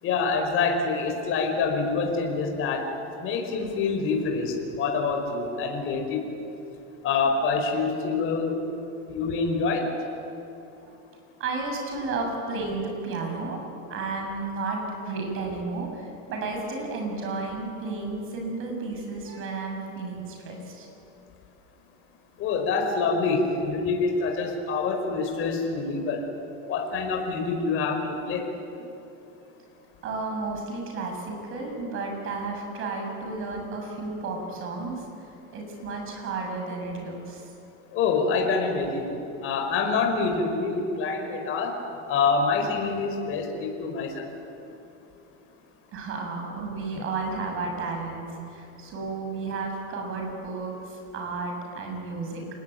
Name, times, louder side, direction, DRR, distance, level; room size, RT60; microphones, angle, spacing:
voice 1, 0.0-2.9 3.2-6.3 7.0-8.7 9.1-9.9 22.4-26.2 26.7-28.5 37.9-39.1 39.4-41.8 42.1-44.3, left 4 dB, 40° left, 3 dB, 4.9 m, -26 dB
voice 2, 11.4-20.9 30.0-35.1 35.5-37.4 45.9-52.5, right 3 dB, 40° right, 2 dB, 7.4 m, -32 dB
28.0 x 20.0 x 9.3 m, 2.8 s
supercardioid pair, 155°, 33 cm